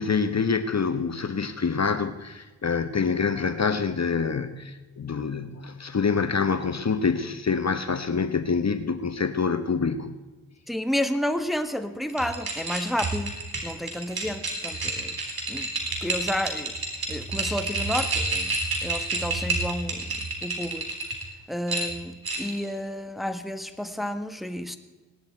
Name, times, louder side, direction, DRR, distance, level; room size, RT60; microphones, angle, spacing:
voice 1, 0.0-10.1, left 5 dB, 40° left, 10 dB, 1.1 m, -26 dB
voice 2, 10.7-13.3 13.6-15.7 16.0-16.7 17.1-18.6 18.8-20.1 20.4-20.9 21.5-24.8, equal, ahead, 9 dB, 1.4 m, -31 dB
sound 1, 12.1-21.2 21.7-22.6, right 3 dB, 65° right, 3.8 m, -29 dB
18.5 x 11.5 x 4.5 m, 1.2 s
supercardioid pair, 40°, 40 cm